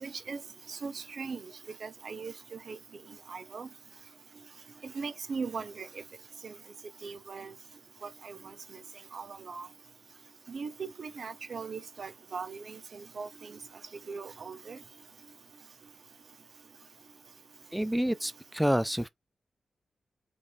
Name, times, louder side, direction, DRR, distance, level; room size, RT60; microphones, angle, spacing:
voice 1, 0.0-0.4 0.7-1.5 1.8-2.8 3.3-3.7 4.8-5.9 6.4-6.5 7.0-7.5 8.0-8.4 9.1-9.7 10.5-13.6 14.1-14.8, right 5 dB, 55° right, 0.6 m, -39 dB
voice 2, 17.7-19.1, equal, 5° right, 0.3 m, -28 dB
5.3 x 2.4 x 3.8 m
wide cardioid pair, 105°, 0 cm